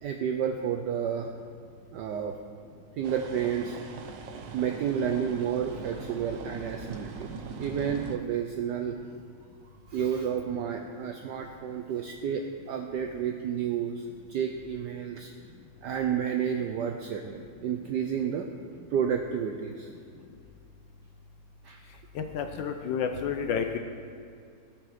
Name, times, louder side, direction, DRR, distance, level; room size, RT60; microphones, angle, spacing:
voice 1, 0.0-1.3 1.9-2.4 2.9-3.8 4.5-7.3 7.6-9.0 9.9-15.3 15.8-18.5 18.9-19.9 21.6-21.8, right 8 dB, 80° right, 5 dB, 0.9 m, -31 dB
sound 1, 3.0-8.2, right 5 dB, 65° right, 1.3 m, -41 dB
voice 2, 22.1-23.8, left 7 dB, 75° left, 6 dB, 1.1 m, -30 dB
17.0 x 5.9 x 4.1 m, 2.3 s
omnidirectional pair, 2.4 m